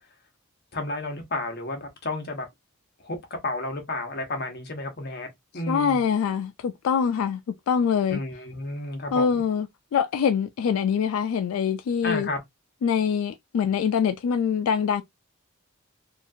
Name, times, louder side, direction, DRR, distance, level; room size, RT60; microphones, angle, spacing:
voice 1, 0.7-2.5 3.0-3.2 3.4-5.3 5.5-6.0 8.1-9.4 12.0-12.4, left 2 dB, 45° left, 0.9 m, -31 dB
voice 2, 5.7-7.4 7.7-8.2 9.1-12.3 12.8-15.0, left 7 dB, 75° left, 0.3 m, -24 dB
2.8 x 2.4 x 2.6 m
head